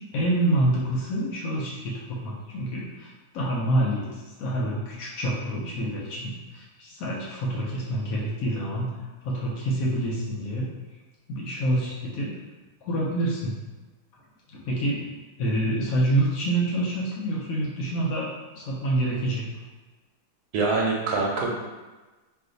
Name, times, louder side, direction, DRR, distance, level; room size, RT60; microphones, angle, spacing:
voice 1, 0.1-8.9 9.2-10.7 11.3-12.4 12.8-13.6 14.5-15.1 15.4-18.3 18.5-19.5, right 1 dB, 70° left, -3 dB, 0.9 m, -27 dB
voice 2, 20.5-21.6, right 3 dB, 70° right, -1 dB, 1.0 m, -24 dB
2.5 x 2.4 x 3.8 m, 1.2 s
omnidirectional pair, 1.8 m